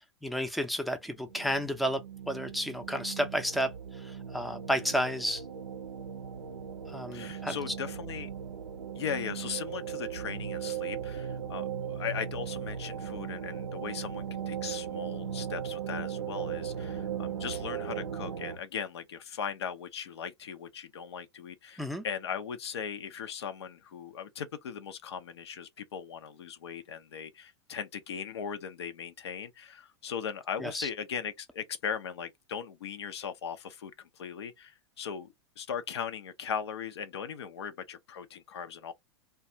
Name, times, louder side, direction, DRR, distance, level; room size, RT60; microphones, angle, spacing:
voice 1, 0.0-5.4 6.9-7.6 21.8-22.0 30.6-30.9, equal, ahead, 0.5 m, -32 dB
sound 1, 1.2-18.6, right 8 dB, 85° right, 0.5 m, -38 dB
voice 2, 7.1-8.3 9.0-38.9, left 7 dB, 70° left, 0.6 m, -38 dB
2.4 x 2.3 x 2.7 m
hypercardioid pair, 95°, 14 cm